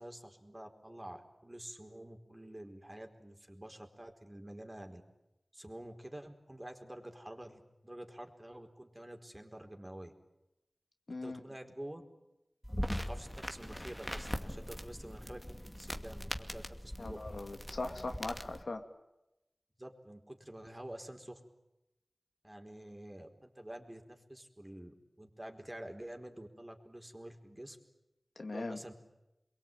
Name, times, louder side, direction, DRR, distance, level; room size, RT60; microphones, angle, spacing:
voice 1, 0.0-5.0 5.5-10.1 11.1-12.0 13.0-17.2 19.8-21.4 22.4-27.8 28.5-28.9, right 1 dB, 25° right, 4 dB, 4.6 m, -48 dB
voice 2, 11.1-11.4 17.0-18.8 28.4-28.8, left 2 dB, 80° left, 5 dB, 2.7 m, -40 dB
sound 1, 12.6-18.6, equal, 10° left, 2.4 m, -41 dB
28.0 x 23.0 x 9.2 m, 0.93 s
wide cardioid pair, 45°, 0 cm